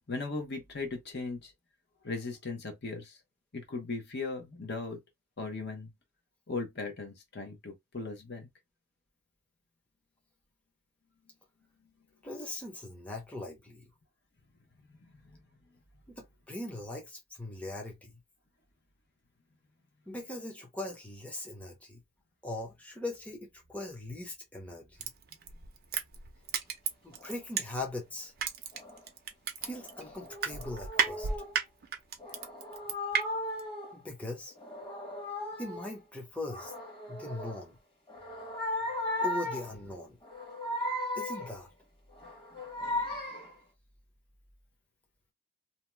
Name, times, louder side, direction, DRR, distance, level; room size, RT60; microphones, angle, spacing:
voice 1, 0.1-1.5 2.0-3.2 3.5-5.0 5.4-5.9 6.5-8.5 14.9-15.4, left 3 dB, 50° left, 0.9 m, -38 dB
voice 2, 12.2-13.8 16.1-18.2 20.1-22.0 22.4-25.0 27.0-28.3 29.6-31.3 33.9-34.5 35.6-36.7 37.1-37.8 39.2-40.2 41.1-41.7, left 2 dB, 5° left, 0.7 m, -40 dB
Crushing, 25.0-28.0 28.4-33.2 33.6-33.7, right 7 dB, 45° right, 0.5 m, -33 dB
sound 1, 27.1-27.4 28.7-29.1 29.6-31.5 32.2-34.0 34.5-36.0 36.4-37.7 38.1-39.8 40.2-41.6 42.1-43.6, left 1 dB, 25° left, 1.3 m, -37 dB
2.7 x 2.2 x 3.2 m
head